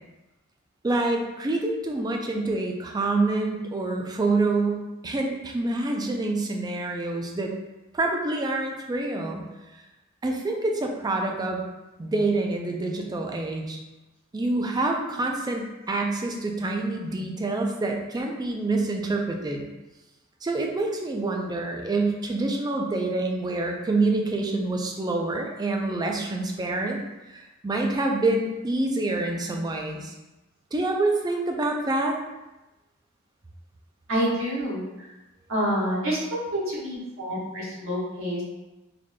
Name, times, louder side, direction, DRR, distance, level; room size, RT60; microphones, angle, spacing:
voice 1, 0.8-7.5 7.9-9.4 10.2-11.6 12.0-13.8 14.3-19.7 20.4-27.0 27.3-30.1 30.7-32.2, right 2 dB, 20° right, 2 dB, 0.4 m, -27 dB
voice 2, 34.1-35.1 35.5-38.4, equal, 65° right, -6 dB, 1.2 m, -28 dB
3.9 x 3.1 x 2.2 m, 1.0 s
head